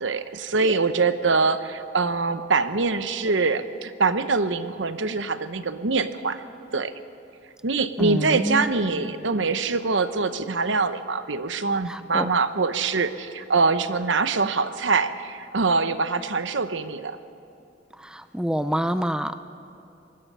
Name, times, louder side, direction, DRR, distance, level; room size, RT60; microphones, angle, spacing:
voice 1, 0.0-6.4 6.7-6.9 7.6-17.2, right 4 dB, 75° right, 11 dB, 0.9 m, -24 dB
voice 2, 8.0-8.7 11.9-12.3 18.1-19.4, equal, 5° right, 10 dB, 0.5 m, -26 dB
25.0 x 20.5 x 5.6 m, 2.9 s
head